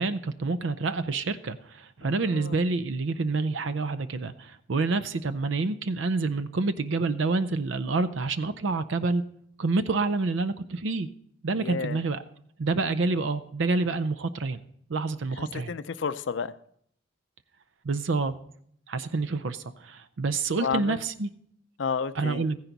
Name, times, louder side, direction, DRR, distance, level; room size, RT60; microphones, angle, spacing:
voice 1, 0.0-9.2 9.6-11.1 11.4-12.2 12.6-14.6 14.9-15.7 17.8-18.3 18.9-21.3 22.2-22.6, right 3 dB, 75° right, 13 dB, 0.5 m, -28 dB
voice 2, 2.0-2.7 11.6-12.0 15.4-16.5 20.6-21.0 21.8-22.4, left 6 dB, 70° left, 14 dB, 0.5 m, -32 dB
14.5 x 10.5 x 4.0 m, 0.66 s
head